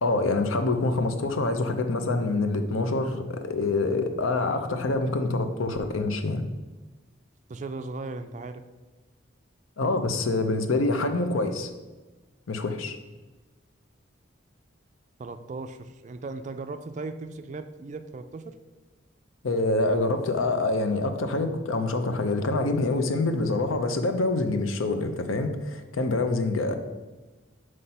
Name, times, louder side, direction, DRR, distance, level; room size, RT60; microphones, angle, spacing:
voice 1, 0.0-6.4 9.8-11.7 12.5-13.0 19.4-26.7, left 2 dB, 90° left, 8 dB, 0.6 m, -26 dB
voice 2, 7.5-8.6 15.2-18.5, right 3 dB, 35° right, 9 dB, 0.3 m, -37 dB
5.7 x 3.2 x 5.4 m, 1.2 s
head